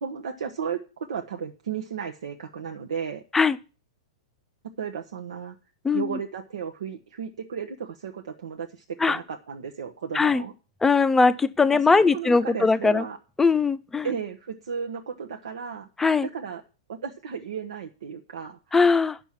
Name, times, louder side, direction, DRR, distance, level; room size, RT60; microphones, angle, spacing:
voice 1, 0.0-3.2 4.8-5.6 5.9-10.5 11.7-13.2 14.0-15.9 16.2-16.6 16.9-18.8, right 7 dB, 85° right, 0.9 m, -34 dB
voice 2, 5.8-6.2 9.0-9.2 10.1-10.4 10.8-13.0 13.4-14.1 16.0-16.3 18.7-19.2, left 4 dB, 10° left, 0.5 m, -20 dB
9.1 x 6.1 x 7.3 m
hypercardioid pair, 130°, 3 cm